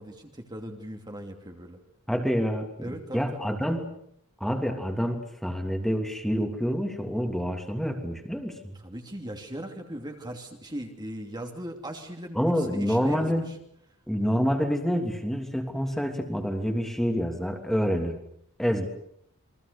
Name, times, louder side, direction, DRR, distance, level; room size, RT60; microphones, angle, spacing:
voice 1, 0.0-1.8 2.8-3.5 8.7-13.6, right 1 dB, 20° right, 3 dB, 2.7 m, -39 dB
voice 2, 2.1-2.7 3.1-3.9 4.4-8.6 12.3-13.5 14.1-18.2 18.6-18.9, equal, ahead, 4 dB, 2.9 m, -27 dB
29.0 x 23.5 x 6.9 m, 0.70 s
head